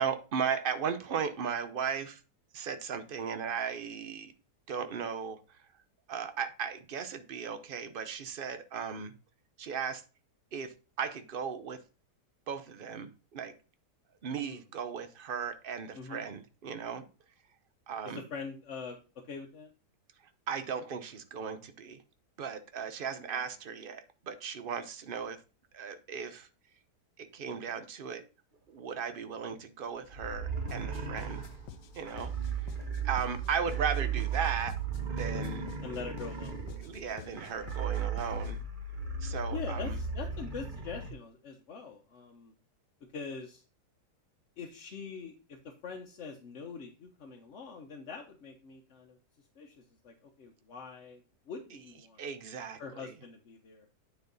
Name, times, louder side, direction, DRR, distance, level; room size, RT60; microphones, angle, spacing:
voice 1, 0.0-2.2 2.5-4.3 4.7-5.6 6.1-9.1 9.6-10.0 10.5-11.8 12.5-13.5 14.2-17.0 17.9-18.2 20.5-22.0 22.4-25.4 25.7-26.5 27.2-28.2 28.7-31.4 31.9-32.7 33.0-34.8 35.1-35.7 36.8-38.6 39.2-40.0 52.2-53.1, right 6 dB, 50° right, 10 dB, 0.6 m, -36 dB
voice 2, 18.0-19.0 19.3-19.7 35.8-36.6 39.5-42.5 43.1-43.6 44.6-45.6 45.8-49.2 49.6-52.2 52.8-53.9, left 5 dB, 50° left, 2 dB, 1.0 m, -43 dB
sound 1, 30.1-41.1, right 6 dB, 35° right, 1.0 m, -36 dB
sound 2, 30.7-38.7, left 10 dB, 80° left, 1.2 m, -51 dB
9.3 x 4.6 x 3.9 m, 0.33 s
omnidirectional pair, 1.8 m